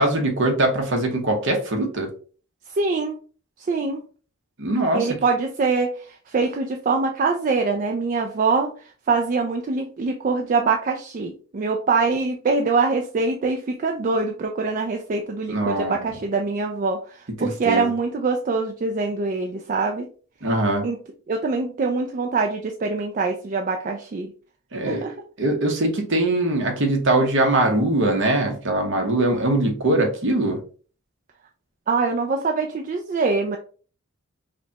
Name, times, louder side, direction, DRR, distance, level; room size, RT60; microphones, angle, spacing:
voice 1, 0.0-2.1 4.6-5.1 15.5-16.1 17.4-17.9 20.4-20.8 24.7-30.6, right 2 dB, 55° right, 3 dB, 0.9 m, -22 dB
voice 2, 2.8-3.2 3.7-4.0 4.9-8.7 9.1-17.0 17.4-20.1 20.8-21.0 21.3-24.3 24.9-25.1 31.9-33.6, right 4 dB, 35° right, 3 dB, 0.3 m, -24 dB
5.0 x 2.2 x 2.8 m, 0.40 s
head